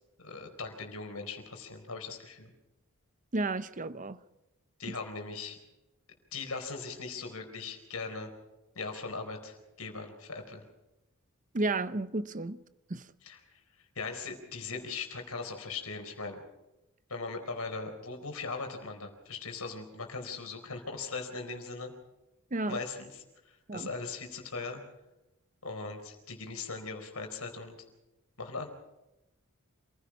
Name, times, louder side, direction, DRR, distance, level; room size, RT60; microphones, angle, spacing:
voice 1, 0.2-2.5 4.8-5.6 6.3-8.3 8.7-10.6 13.2-13.4 13.9-16.4 17.1-21.9 22.7-23.2 23.7-24.8 25.6-27.8 28.4-28.7, left 4 dB, 80° left, 4.3 m, -39 dB
voice 2, 3.3-4.2 4.9-5.0 11.5-12.6 12.9-13.0 22.5-22.8 23.7-23.9, right 2 dB, 35° right, 0.7 m, -32 dB
27.5 x 16.0 x 6.0 m
head